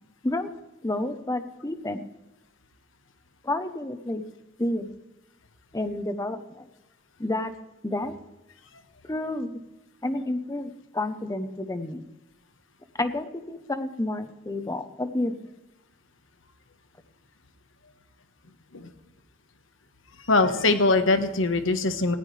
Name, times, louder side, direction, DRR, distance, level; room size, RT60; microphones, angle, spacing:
voice 1, 0.8-2.1 3.4-4.2 4.6-4.9 5.7-6.7 7.2-7.5 7.8-8.1 9.1-9.5 10.0-12.1 12.9-15.3, left 1 dB, 15° left, 10 dB, 0.9 m, -30 dB
voice 2, 20.2-22.2, left 3 dB, 70° left, 8 dB, 1.4 m, -22 dB
19.0 x 14.5 x 3.4 m, 1.0 s
head